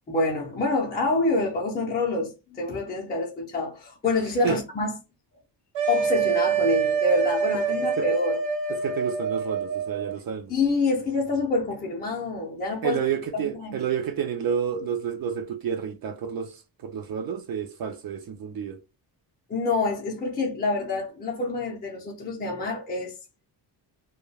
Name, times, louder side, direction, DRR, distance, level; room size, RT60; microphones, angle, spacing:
voice 1, 0.1-5.0 5.9-8.4 10.5-13.0 13.3-13.9 19.5-23.2, left 3 dB, 20° left, 0.4 m, -26 dB
sound 1, 5.7-10.2, right 6 dB, 80° right, 0.8 m, -26 dB
voice 2, 8.7-10.5 12.8-18.8, right 7 dB, 55° right, 0.5 m, -30 dB
2.2 x 2.1 x 3.2 m
wide cardioid pair, 155°, 43 cm